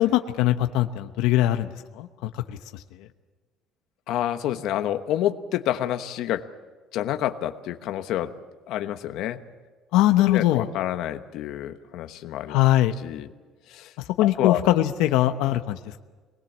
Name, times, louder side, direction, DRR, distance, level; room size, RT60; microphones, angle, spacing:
voice 1, 0.0-3.1 9.9-10.7 12.5-12.9 14.2-16.0, left 14 dB, 90° left, 8 dB, 1.0 m, -22 dB
voice 2, 4.1-6.5 6.9-8.3 8.7-9.4 10.2-12.6 13.0-13.3 13.7-13.9 14.2-14.6, left 12 dB, 55° left, 7 dB, 1.2 m, -28 dB
26.0 x 20.0 x 7.4 m, 1.4 s
cardioid pair, 180°, 0 cm